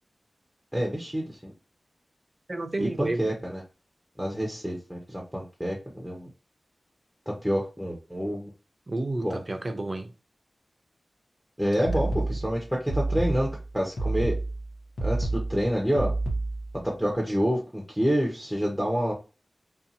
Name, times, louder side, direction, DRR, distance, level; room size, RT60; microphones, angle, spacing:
voice 1, 0.7-1.5 2.8-3.6 4.2-6.3 7.3-8.5 9.2-9.4 11.6-14.3 15.0-16.1 16.8-19.1, equal, ahead, 0.7 m, -28 dB
voice 2, 2.5-3.3 8.9-10.1 11.8-11.9, right 2 dB, 40° right, 0.5 m, -31 dB
sound 1, 11.8-16.8, right 2 dB, 80° left, 0.8 m, -29 dB
2.7 x 2.3 x 2.6 m
cardioid pair, 50°, 0 cm